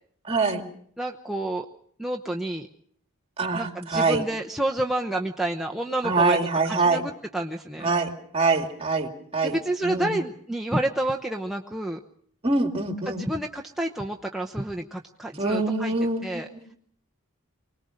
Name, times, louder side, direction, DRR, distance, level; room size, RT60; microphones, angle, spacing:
voice 1, 0.3-0.6 3.4-4.2 6.0-7.0 7.8-9.6 9.8-10.2 12.4-13.3 15.4-16.6, right 3 dB, 30° right, 4 dB, 2.4 m, -24 dB
voice 2, 1.0-1.7 2.0-2.7 3.5-7.9 9.4-12.0 13.1-15.9 16.2-16.5, right 1 dB, ahead, 1 dB, 0.8 m, -29 dB
24.5 x 19.5 x 6.5 m, 0.62 s
head